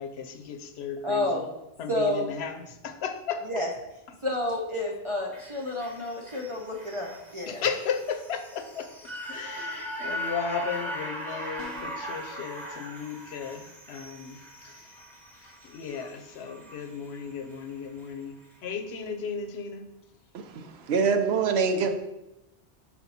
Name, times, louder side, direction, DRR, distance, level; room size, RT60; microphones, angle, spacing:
voice 1, 0.0-1.4 1.8-3.4 7.4-15.0 15.4-18.4 18.6-19.9, left 6 dB, 75° left, 8 dB, 0.9 m, -35 dB
voice 2, 1.0-1.4 1.9-2.3 3.5-3.7 4.2-7.6, left 1 dB, 35° right, -2 dB, 0.7 m, -29 dB
sound 1, 5.3-17.7 18.0-18.1, equal, ahead, 0.9 m, -39 dB
sound 2, 11.6-12.1, left 4 dB, 25° left, 0.5 m, -45 dB
voice 3, 20.3-22.0, right 5 dB, 75° right, 7 dB, 0.9 m, -25 dB
5.9 x 4.4 x 4.1 m, 0.91 s
omnidirectional pair, 1.1 m